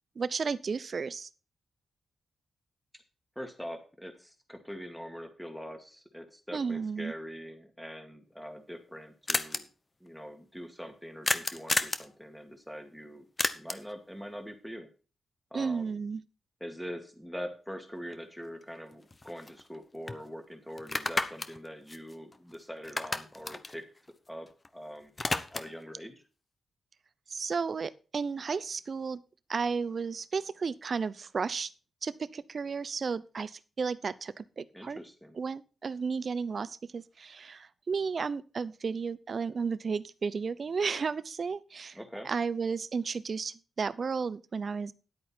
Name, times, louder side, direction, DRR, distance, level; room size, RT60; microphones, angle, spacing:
voice 1, 0.2-1.3 6.5-7.1 15.5-16.2 27.3-29.2 29.5-31.7 32.0-35.0 35.4-42.0 42.2-44.9, right 5 dB, 50° right, 17 dB, 0.6 m, -33 dB
voice 2, 3.4-9.7 10.0-13.2 13.5-14.9 15.5-16.0 16.6-23.8 24.3-24.5 24.7-26.1 34.7-35.4 41.9-42.3, equal, ahead, 6 dB, 2.2 m, -43 dB
sound 1, 8.3-8.4 8.6-8.7 8.9-9.0 9.3-9.6 11.2-12.1 13.4-13.9 18.1-18.2 18.6-19.8 20.1-20.2 20.8-22.6 22.8-24.7 25.0-25.8, left 2 dB, 30° left, 1.0 m, -32 dB
10.5 x 8.6 x 4.4 m, 0.35 s
cardioid pair, 80°, 0 cm